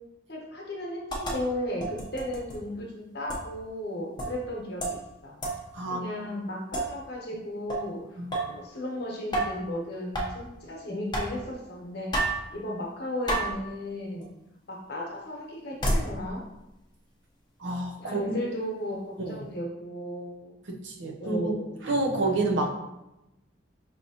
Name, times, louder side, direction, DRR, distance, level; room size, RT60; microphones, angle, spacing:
voice 1, 0.3-5.4 5.9-12.2 12.5-14.3 14.7-16.4 18.0-19.0 19.3-20.5 21.2-21.8, left 1 dB, 55° left, -2 dB, 1.0 m, -35 dB
sound 1, 1.1-1.4 1.8-2.6 3.3-3.4 4.2-4.4 4.8-5.0 5.4-5.6 6.7-6.9 7.7-7.9 8.3-8.6 9.3-9.7 10.1-10.3 11.1-11.3 12.1-12.4 13.3-13.6 14.2-14.3 15.8-16.1, right 1 dB, 25° left, 0.7 m, -29 dB
voice 2, 5.7-6.0 8.2-8.3 17.6-18.4 19.2-19.4 20.7-21.5 21.8-22.7, right 2 dB, 80° right, 2 dB, 0.7 m, -29 dB
4.9 x 3.0 x 2.8 m, 0.92 s
head